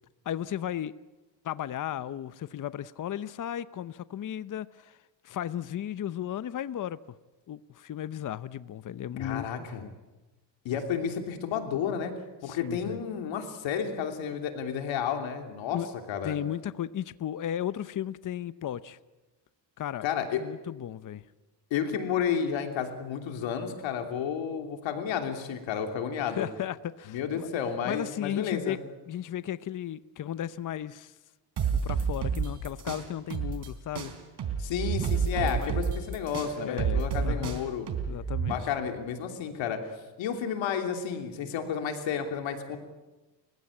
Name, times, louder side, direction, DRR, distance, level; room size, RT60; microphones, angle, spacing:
voice 1, 0.2-0.9 1.4-5.0 5.2-7.0 7.5-9.9 12.4-13.0 15.7-15.9 16.2-19.0 19.8-20.1 20.4-21.2 26.3-27.5 27.9-28.8 29.1-31.1 31.7-34.1 35.3-35.8 36.4-37.6 38.1-38.7, left 10 dB, 45° left, 15 dB, 0.8 m, -35 dB
voice 2, 9.2-9.8 10.6-12.1 12.4-15.8 16.1-16.4 20.0-20.4 21.7-26.5 27.1-28.8 34.6-37.9 38.5-42.8, left 7 dB, 90° left, 5 dB, 3.2 m, -31 dB
sound 1, 31.6-33.7 33.9-38.5, right 6 dB, 60° right, 3.9 m, -29 dB
30.0 x 16.0 x 8.6 m, 1.2 s
cardioid pair, 100°, 44 cm